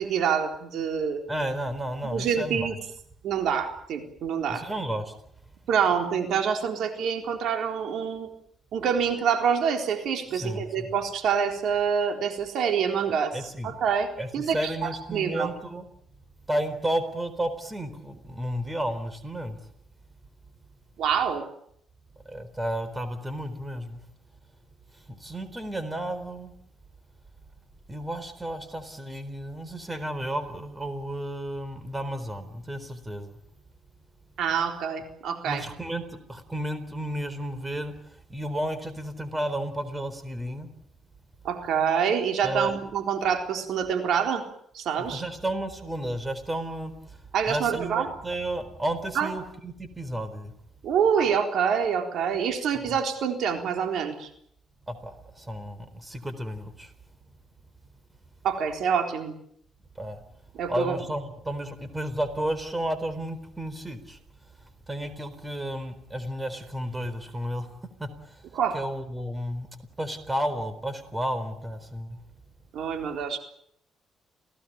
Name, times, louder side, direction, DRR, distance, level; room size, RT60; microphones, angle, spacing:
voice 1, 0.0-1.2 2.0-2.7 3.2-4.6 5.7-8.3 8.7-15.5 21.0-21.4 34.4-35.6 41.4-44.4 44.7-45.2 47.3-48.1 49.1-49.3 50.8-54.3 58.4-59.3 60.5-61.0 68.5-68.8 72.7-73.4, right 7 dB, 75° right, 5 dB, 4.0 m, -26 dB
voice 2, 1.3-2.7 4.5-5.1 10.3-10.9 13.3-13.8 14.2-15.9 16.5-19.6 22.2-24.0 24.9-26.6 27.9-33.4 35.5-37.9 38.3-40.7 42.4-42.7 45.0-47.2 47.5-50.5 52.8-52.9 54.9-56.9 60.0-60.2 60.7-64.2 64.9-67.7 68.0-68.4 68.7-69.7 70.0-72.2, right 1 dB, 15° right, 12 dB, 4.1 m, -32 dB
28.5 x 17.5 x 8.8 m, 0.70 s
cardioid pair, 90°, 0 cm